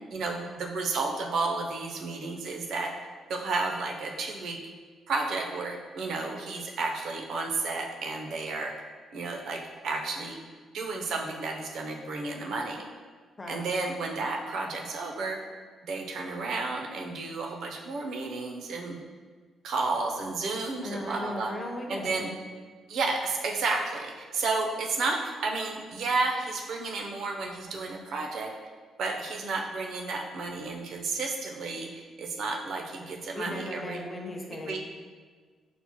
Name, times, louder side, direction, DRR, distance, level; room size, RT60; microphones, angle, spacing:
voice 1, 0.1-2.9 3.3-4.6 5.1-8.7 9.1-10.4 10.7-12.8 13.5-15.4 15.8-19.0 19.6-21.5 21.9-22.4 22.9-28.5 29.0-34.0 34.7-34.8, right 3 dB, 70° right, 2 dB, 0.5 m, -32 dB
voice 2, 20.8-22.3 33.3-34.8, left 1 dB, 25° left, 1 dB, 0.6 m, -37 dB
5.9 x 2.0 x 2.9 m, 1.5 s
cardioid pair, 90°, 0 cm